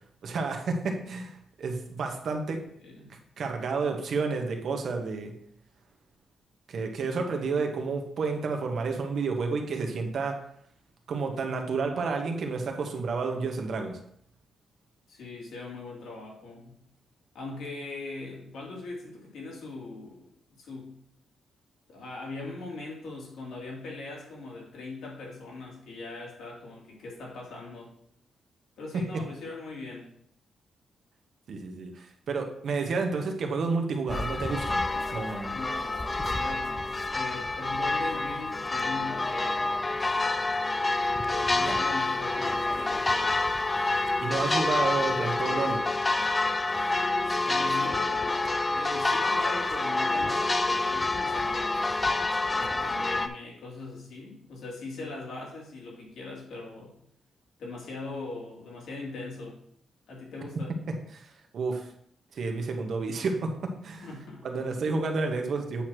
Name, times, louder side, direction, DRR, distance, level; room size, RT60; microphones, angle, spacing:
voice 1, 0.2-2.6 3.4-5.3 6.7-10.3 11.1-14.0 31.5-34.8 35.1-35.5 41.7-41.8 44.2-45.8 61.1-61.3 61.5-61.9 62.3-64.1 64.4-65.8, right 4 dB, 55° right, 3 dB, 1.1 m, -30 dB
voice 2, 15.1-16.8 17.3-20.3 20.6-20.9 21.9-27.9 28.8-30.1 35.5-39.8 41.3-43.5 47.4-48.4 48.7-52.0 52.6-57.0 57.6-59.6 60.1-60.8 64.0-64.5, left 3 dB, 80° left, -3 dB, 2.6 m, -40 dB
sound 1, 34.1-53.3, left 2 dB, 15° left, 0.4 m, -28 dB
8.5 x 3.0 x 6.1 m, 0.69 s
wide cardioid pair, 155°, 0 cm